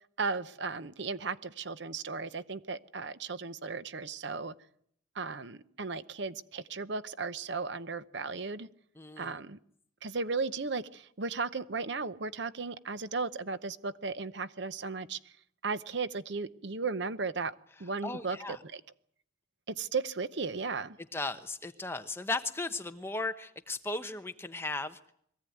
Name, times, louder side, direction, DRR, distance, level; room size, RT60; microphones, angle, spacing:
voice 1, 0.2-4.5 5.1-8.7 9.2-9.6 10.0-15.2 15.6-17.5 17.8-18.8 19.7-21.0, right 4 dB, 60° right, 14 dB, 0.8 m, -35 dB
voice 2, 9.0-9.4 18.0-18.6 21.1-25.0, left 3 dB, 10° left, 8 dB, 0.9 m, -36 dB
22.5 x 16.0 x 9.3 m, 0.68 s
head